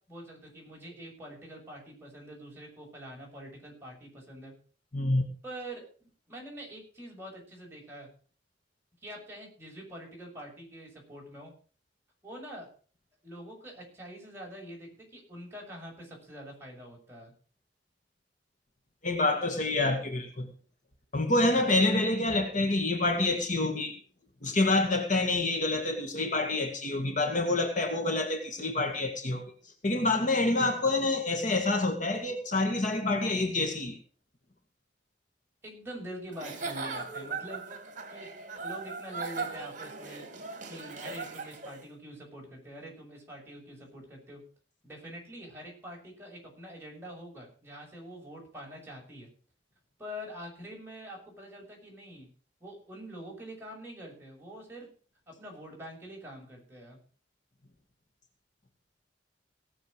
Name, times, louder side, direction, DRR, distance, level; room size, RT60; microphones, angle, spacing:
voice 1, 0.1-4.5 5.4-8.1 9.0-11.5 12.2-12.7 13.2-17.3 35.6-37.8 38.1-38.3 38.6-40.2 40.7-44.4 44.8-49.3 50.0-52.3 52.6-54.9 55.4-57.0, equal, 15° right, 6.4 m, -45 dB
voice 2, 4.9-5.3 19.0-20.5 21.1-24.0 24.4-29.4 29.8-34.0, left 2 dB, 45° left, 2.0 m, -27 dB
Giggle / Chuckle chortle, 36.3-41.8, right 4 dB, 45° right, 2.4 m, -39 dB
18.0 x 7.1 x 6.3 m
head